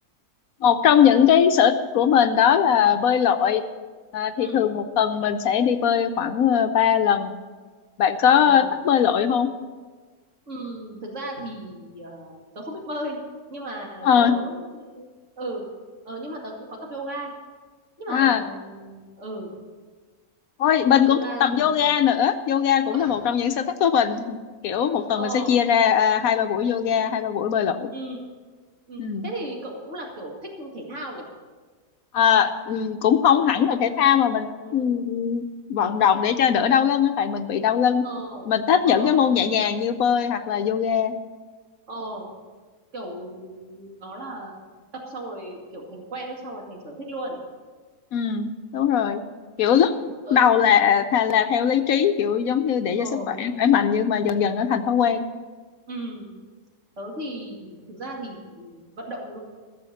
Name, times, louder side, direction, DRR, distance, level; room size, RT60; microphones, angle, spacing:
voice 1, 0.6-3.6 4.1-7.3 8.0-9.5 14.0-14.3 18.1-18.4 20.6-24.4 24.6-27.9 29.0-29.3 32.1-38.0 38.5-41.1 48.1-49.2 49.6-49.9 50.3-55.3, left 8 dB, 70° left, 9 dB, 1.1 m, -20 dB
voice 2, 8.4-8.7 10.5-13.2 13.5-15.1 15.4-15.6 16.0-17.3 18.0-19.5 21.1-21.9 22.8-23.2 25.2-25.5 27.9-28.2 28.9-31.3 34.6-34.9 38.0-38.5 38.8-39.2 41.9-42.3 42.9-44.6 44.9-47.4 50.3-50.5 53.0-53.5 55.9-56.3 57.0-59.4, right 1 dB, 55° right, -1 dB, 2.6 m, -36 dB
14.0 x 7.1 x 7.1 m, 1.4 s
omnidirectional pair, 1.6 m